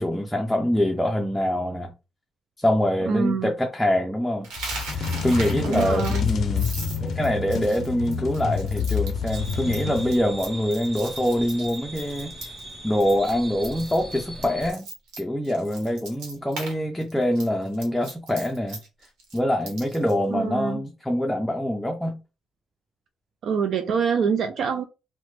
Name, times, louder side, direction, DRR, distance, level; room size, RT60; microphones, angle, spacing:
voice 1, 0.0-1.9 2.6-4.5 4.9-6.7 7.0-12.5 12.8-14.9 15.2-18.8 19.3-22.2, left 1 dB, 5° left, 0.5 m, -25 dB
voice 2, 3.1-3.5 5.6-6.3 20.3-20.8 23.4-24.8, right 6 dB, 65° right, 0.3 m, -25 dB
Coin (dropping), 4.4-12.7 13.0-13.3 13.6-16.7 17.0-20.1, right 3 dB, 85° right, 1.0 m, -38 dB
sound 1, 4.6-10.5, left 6 dB, 60° left, 0.4 m, -28 dB
sound 2, 9.3-14.7, right 1 dB, 40° right, 1.0 m, -39 dB
2.9 x 2.1 x 3.1 m
cardioid pair, 80°, 0 cm